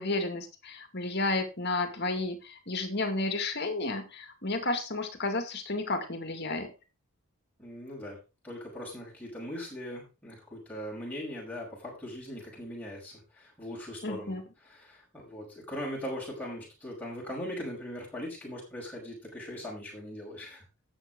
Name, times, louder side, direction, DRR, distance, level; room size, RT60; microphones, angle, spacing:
voice 1, 0.0-6.7 14.0-14.4, left 2 dB, 50° left, 7 dB, 2.2 m, -32 dB
voice 2, 7.6-8.2 8.4-14.4 14.6-20.6, equal, 5° left, -5 dB, 5.7 m, -40 dB
12.5 x 8.1 x 3.8 m, 0.29 s
head